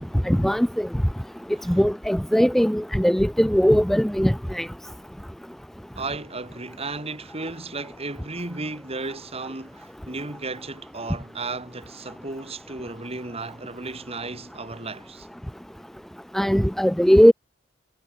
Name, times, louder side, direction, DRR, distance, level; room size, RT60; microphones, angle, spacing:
voice 1, 0.2-0.9 1.7-4.7 16.3-17.3, equal, ahead, 0.4 m, -19 dB
voice 2, 6.0-15.3, right 3 dB, 35° right, 3.5 m, -34 dB
head